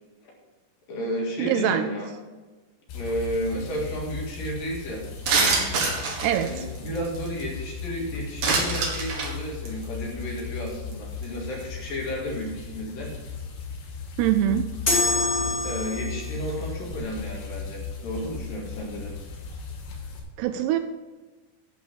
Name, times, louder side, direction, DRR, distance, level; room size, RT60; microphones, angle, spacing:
voice 1, 0.9-2.1 2.9-5.1 6.4-13.2 15.6-19.1, equal, 60° left, -2 dB, 3.1 m, -32 dB
voice 2, 1.4-1.8 6.2-6.5 14.2-14.7 20.4-20.8, right 11 dB, 85° right, 9 dB, 2.5 m, -23 dB
sound 1, 2.9-20.2, left 5 dB, 80° left, 3.6 m, -37 dB
sound 2, 5.3-7.4 8.4-9.3 9.6-9.8 10.4-10.5 10.7-10.9 11.2-11.3, right 3 dB, 55° right, 2.4 m, -25 dB
sound 3, 14.9-16.4, left 2 dB, 45° left, 0.9 m, -25 dB
11.5 x 5.1 x 6.8 m, 1.3 s
omnidirectional pair, 5.1 m